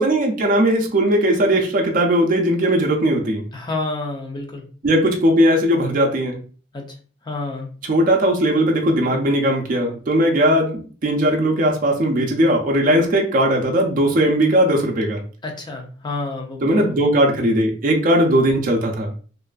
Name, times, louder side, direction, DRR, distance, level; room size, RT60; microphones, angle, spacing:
voice 1, 0.0-3.4 4.8-6.4 7.9-15.2 16.6-19.1, right 1 dB, 45° right, 1 dB, 0.4 m, -18 dB
voice 2, 3.5-4.6 6.7-6.8 7.2-7.7 15.4-16.9, left 3 dB, 25° left, 1 dB, 0.5 m, -29 dB
2.5 x 2.4 x 2.2 m, 0.40 s
head